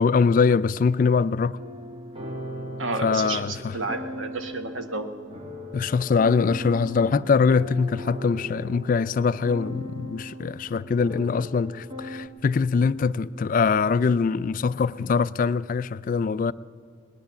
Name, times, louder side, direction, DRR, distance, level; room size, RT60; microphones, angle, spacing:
voice 1, 0.0-1.6 3.0-3.8 5.7-16.5, left 5 dB, 45° left, 0.3 m, -23 dB
sound 1, 1.6-12.3, equal, 25° right, 1.2 m, -38 dB
voice 2, 2.8-5.1, right 3 dB, 80° right, 1.2 m, -31 dB
19.0 x 10.5 x 7.2 m
head